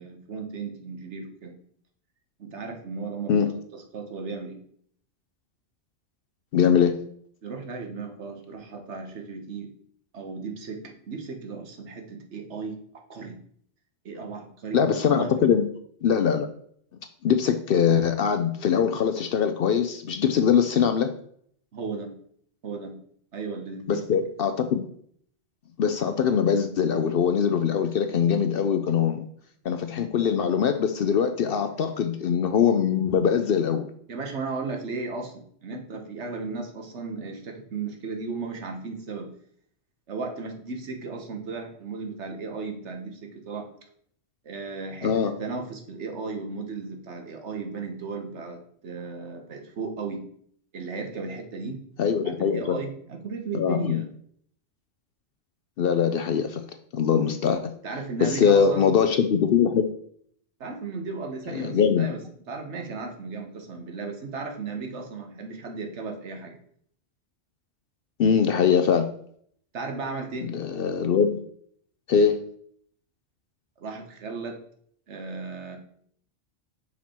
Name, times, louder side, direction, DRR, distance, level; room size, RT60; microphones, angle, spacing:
voice 1, 0.0-1.5 2.4-3.4 3.7-4.6 7.4-9.7 10.1-12.8 13.1-13.4 14.0-14.8 15.1-15.3 21.7-22.1 22.6-23.0 23.3-24.1 34.1-39.3 40.1-43.7 44.4-50.2 50.7-51.8 52.2-54.1 57.8-59.2 60.6-62.2 62.5-66.6 69.7-70.5 73.8-74.6 75.1-75.8, right 4 dB, 70° right, 4 dB, 1.3 m, -35 dB
voice 2, 6.5-6.9 14.7-15.7 16.0-16.5 17.2-21.1 23.9-24.9 25.8-29.2 29.6-33.9 45.0-45.3 52.0-52.8 53.5-54.0 55.8-56.6 56.9-57.6 58.2-59.9 61.5-62.1 68.2-69.1 70.5-71.4 72.1-72.4, left 7 dB, 60° left, 8 dB, 0.7 m, -22 dB
5.8 x 4.5 x 4.3 m, 0.62 s
omnidirectional pair, 1.2 m